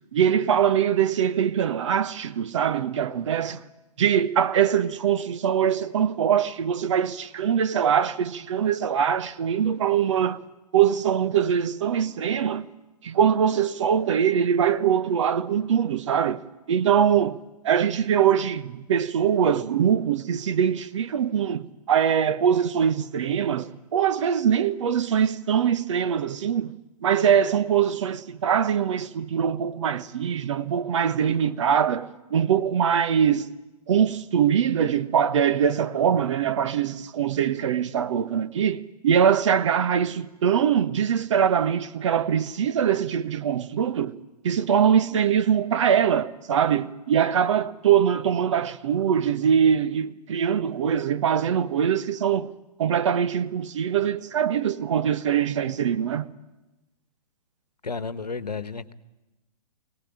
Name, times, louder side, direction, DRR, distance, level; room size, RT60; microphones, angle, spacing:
voice 1, 0.1-3.6 4.0-10.4 10.7-12.7 13.0-16.4 16.7-17.4 17.6-26.8 27.0-33.5 33.9-44.1 44.4-52.5 52.8-56.3, right 8 dB, 50° right, 1.0 m, -23 dB
voice 2, 57.8-58.9, left 4 dB, 75° left, 1.2 m, -32 dB
23.5 x 18.0 x 9.9 m
figure-of-eight pair, 115°, 21 cm